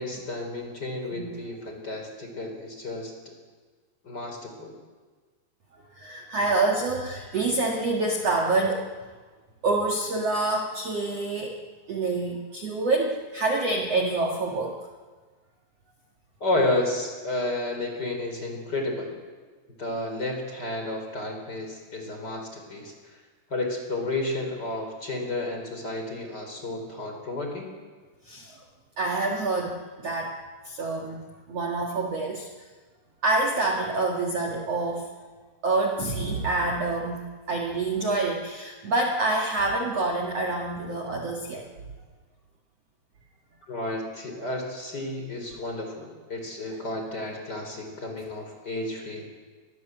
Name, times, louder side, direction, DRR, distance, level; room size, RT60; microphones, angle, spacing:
voice 1, 0.0-3.3 4.0-4.7 16.4-19.1 19.8-23.2 23.5-27.7 43.7-49.3, left 2 dB, 20° left, 3 dB, 3.9 m, -31 dB
voice 2, 5.7-9.1 9.6-11.6 11.9-14.8 28.2-28.6 29.0-30.4 30.6-32.7 33.2-35.1 35.6-37.2 37.5-41.7, right 2 dB, 70° right, 1 dB, 1.5 m, -27 dB
25.0 x 21.5 x 8.0 m, 1.4 s
omnidirectional pair, 5.9 m